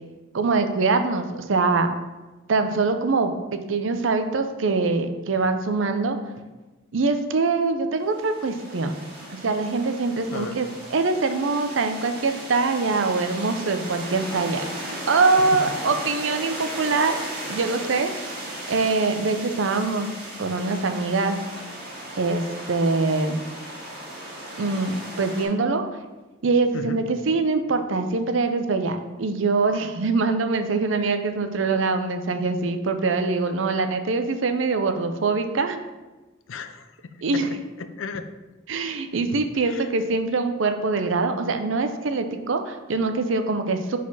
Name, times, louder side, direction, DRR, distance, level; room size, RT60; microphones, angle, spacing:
voice 1, 0.3-1.9 2.5-6.2 6.9-9.0 9.3-14.6 15.1-17.2 17.5-18.1 18.7-20.1 20.4-21.4 22.2-23.4 24.6-25.9 26.4-35.8 37.2-37.5 38.7-44.0, right 3 dB, 70° right, 7 dB, 0.6 m, -23 dB
sound 1, 8.0-25.4, right 1 dB, 50° right, 1.8 m, -36 dB
voice 2, 26.7-27.1 36.5-37.5 37.8-38.3 39.7-39.9, left 5 dB, 75° left, 10 dB, 0.5 m, -35 dB
5.0 x 4.2 x 5.5 m, 1.1 s
head